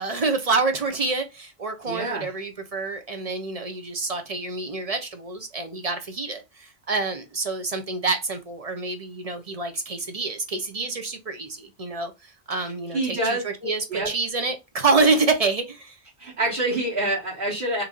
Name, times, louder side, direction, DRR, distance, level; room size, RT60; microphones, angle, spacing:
voice 1, 0.0-16.0, right 3 dB, 40° right, 0.7 m, -27 dB
voice 2, 1.8-2.3 12.9-14.1 16.2-17.8, right 1 dB, 55° right, 1.6 m, -26 dB
3.0 x 2.6 x 3.6 m
omnidirectional pair, 1.1 m